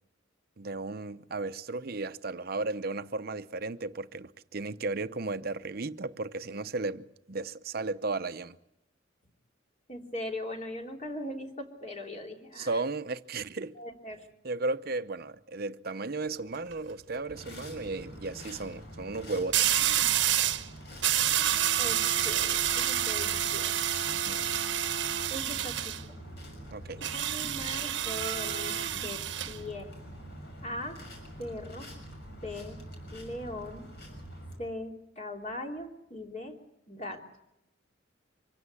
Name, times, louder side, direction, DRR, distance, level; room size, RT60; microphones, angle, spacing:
voice 1, 0.6-8.6 12.5-13.7 14.4-19.8 24.1-24.5 26.7-27.0, right 3 dB, 50° right, 0.8 m, -35 dB
voice 2, 9.9-12.8 13.8-14.3 21.8-23.8 25.3-26.2 27.1-29.9 30.6-31.0 31.4-31.9 32.4-32.8 33.1-33.8 34.6-36.6 36.9-37.2, left 1 dB, 40° left, 3.2 m, -40 dB
sound 1, 16.4-16.7 19.5-20.7 21.0-26.0 27.0-29.6, right 11 dB, 70° right, 1.0 m, -28 dB
sound 2, 17.3-34.6, equal, 60° left, 6.5 m, -46 dB
25.0 x 16.0 x 8.3 m
head